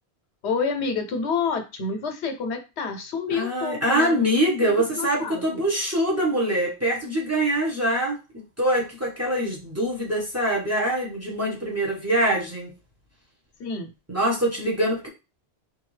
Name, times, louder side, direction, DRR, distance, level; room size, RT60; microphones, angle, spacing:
voice 1, 0.4-5.7 13.6-13.9, left 5 dB, 75° left, 6 dB, 1.0 m, -29 dB
voice 2, 3.3-8.2 8.6-12.7 14.1-15.1, right 1 dB, 15° right, -2 dB, 0.9 m, -24 dB
3.7 x 2.6 x 3.2 m, 0.29 s
omnidirectional pair, 1.1 m